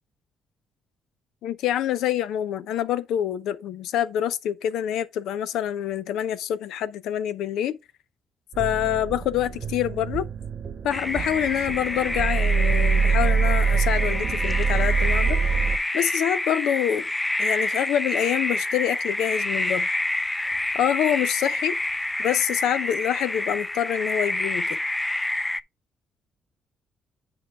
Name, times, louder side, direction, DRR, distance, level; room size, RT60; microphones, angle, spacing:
voice 1, 1.4-7.8 8.6-10.3 10.8-15.4 15.9-17.1 17.4-19.9 20.7-21.8 22.2-24.7, left 10 dB, 85° left, 0.6 m, -26 dB
sound 1, 8.5-15.8, right 5 dB, 45° right, 0.9 m, -24 dB
sound 2, 10.9-25.6, left 1 dB, 10° left, 0.3 m, -28 dB
8.3 x 4.8 x 3.4 m
cardioid pair, 90°, 0 cm